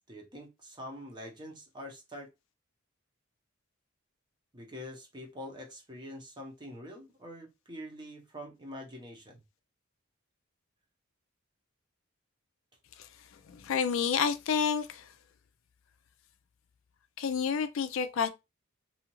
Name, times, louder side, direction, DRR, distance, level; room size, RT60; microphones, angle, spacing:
voice 1, 0.1-2.3 4.5-9.4, equal, 20° right, 0.7 m, -45 dB
voice 2, 13.5-15.0 17.2-18.3, left 6 dB, 60° left, 0.4 m, -29 dB
2.7 x 2.4 x 2.9 m
head